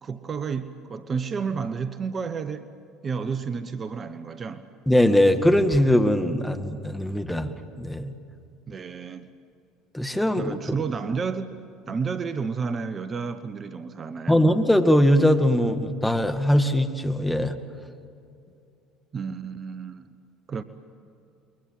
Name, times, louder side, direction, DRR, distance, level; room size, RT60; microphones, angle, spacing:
voice 1, 0.0-2.7 3.0-4.7 8.7-9.3 10.3-11.5 11.9-14.4 19.1-20.1 20.5-20.6, right 5 dB, 35° right, 11 dB, 1.1 m, -31 dB
voice 2, 4.9-8.1 9.9-10.6 14.3-17.6, equal, 5° left, 6 dB, 2.1 m, -21 dB
28.5 x 23.0 x 7.8 m, 2.5 s
hypercardioid pair, 70°, 0 cm